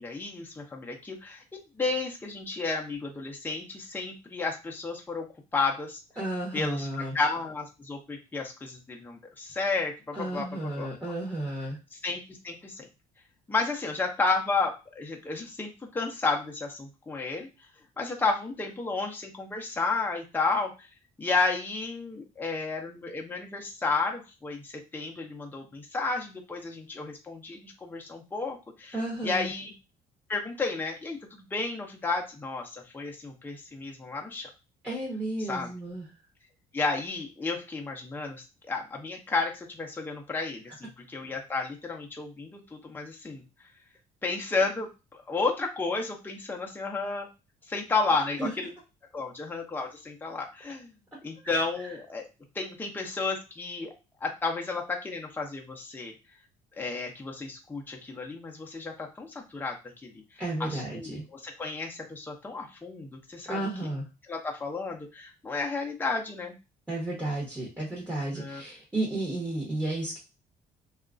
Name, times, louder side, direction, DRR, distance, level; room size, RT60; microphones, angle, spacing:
voice 1, 0.0-5.3 5.5-6.0 6.5-10.9 11.9-12.9 13.5-17.5 18.0-20.9 21.2-29.0 29.2-29.7 30.3-34.5 35.4-35.7 36.7-43.4 44.2-47.3 47.7-48.7 49.1-50.9 51.2-52.2 52.5-53.9 54.2-56.1 56.8-59.8 60.0-63.6 64.3-66.5 68.4-68.6, left 3 dB, 10° left, 0 dB, 0.6 m, -32 dB
voice 2, 6.2-7.2 10.1-11.8 28.9-29.5 34.8-36.1 48.4-48.5 51.4-51.6 60.4-61.2 63.5-64.0 66.9-70.2, right 1 dB, 10° right, -6 dB, 1.0 m, -32 dB
2.8 x 2.4 x 2.4 m, 0.28 s
cardioid pair, 110°, 17 cm